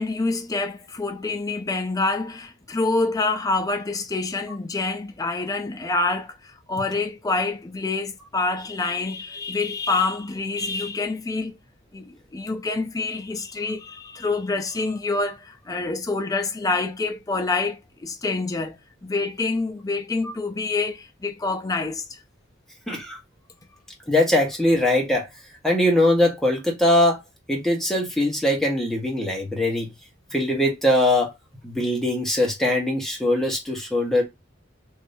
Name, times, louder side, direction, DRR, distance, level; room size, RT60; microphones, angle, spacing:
voice 1, 0.0-11.5 11.9-18.8 19.0-22.2, left 3 dB, 20° left, 0.4 m, -27 dB
voice 2, 22.9-23.2 24.1-25.3 25.6-27.2 27.5-29.9 30.3-31.3 31.6-34.2, left 1 dB, ahead, 1.0 m, -21 dB
3.4 x 2.6 x 2.6 m
head